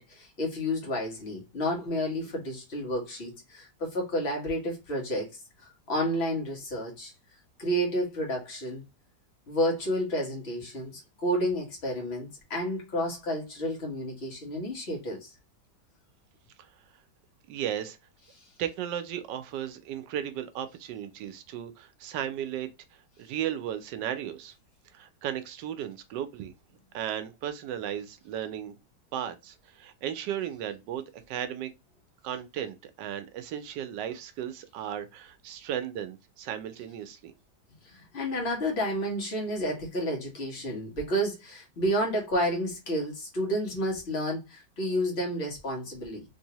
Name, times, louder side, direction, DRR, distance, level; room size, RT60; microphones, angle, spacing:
voice 1, 0.0-5.3 5.6-7.1 7.6-8.8 9.5-15.3 37.8-46.2, equal, 40° left, 1.3 m, -30 dB
voice 2, 17.5-18.0 18.6-22.7 23.2-24.5 24.9-26.5 26.9-28.7 29.1-31.7 32.2-37.3, right 10 dB, 80° right, 1.2 m, -35 dB
3.3 x 2.7 x 2.8 m
omnidirectional pair, 1.9 m